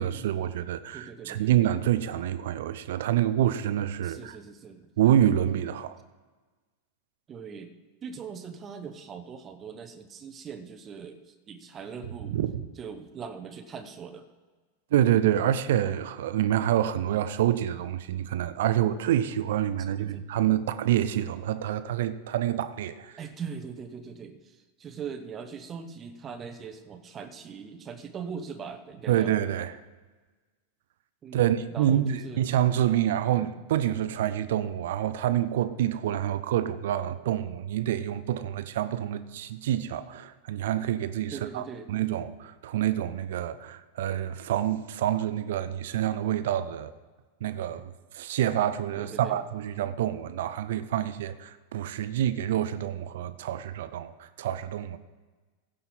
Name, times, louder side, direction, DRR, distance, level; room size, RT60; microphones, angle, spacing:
voice 1, 0.0-4.4 5.0-6.0 12.3-12.6 14.9-23.1 29.1-29.8 31.3-46.9 47.4-55.0, right 11 dB, 55° right, 0.6 m, -27 dB
voice 2, 0.9-1.5 4.0-4.9 7.3-7.7 8.0-12.4 12.8-14.3 19.9-20.2 23.2-29.3 31.2-32.4 41.3-41.9 49.0-49.4, right 6 dB, 25° right, 0.9 m, -41 dB
16.0 x 5.5 x 5.9 m
figure-of-eight pair, 90°, 0 cm